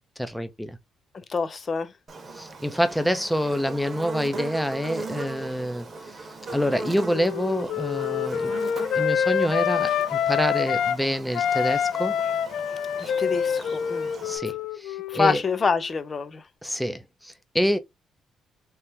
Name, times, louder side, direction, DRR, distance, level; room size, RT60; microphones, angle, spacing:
voice 1, 0.2-0.8 2.3-8.6 8.9-12.2 14.2-15.4 16.6-17.8, equal, 5° left, 0.7 m, -27 dB
voice 2, 1.3-1.9 13.0-14.1 15.1-16.4, left 5 dB, 40° left, 0.6 m, -26 dB
Buzz, 2.1-14.4, right 3 dB, 40° right, 1.0 m, -39 dB
Wind instrument woodwind instrument, 6.5-11.0 11.3-15.8, left 8 dB, 80° left, 0.4 m, -27 dB
3.4 x 2.9 x 2.8 m
cardioid pair, 90°, 0 cm